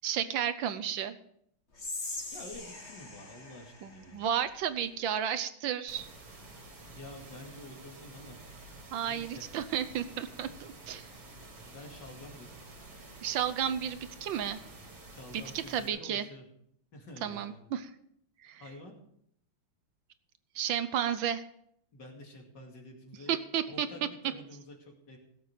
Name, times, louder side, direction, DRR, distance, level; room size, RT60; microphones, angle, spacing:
voice 1, 0.0-1.1 3.8-6.1 8.9-11.1 13.2-14.6 15.3-16.2 17.2-17.9 18.4-18.6 20.5-21.4 23.3-23.9, right 9 dB, 70° right, 12 dB, 1.4 m, -32 dB
Whispering, 1.7-4.9, left 2 dB, 30° left, 2.2 m, -42 dB
voice 2, 2.3-4.3 6.8-8.4 9.0-9.5 11.6-12.6 15.1-16.4 16.9-17.6 18.6-18.9 21.9-23.4 23.7-25.2, left 1 dB, 55° left, 1 dB, 3.0 m, -48 dB
sound 1, 5.9-15.9, right 2 dB, 50° right, 2.8 m, -50 dB
17.5 x 7.8 x 5.2 m, 0.70 s
omnidirectional pair, 2.3 m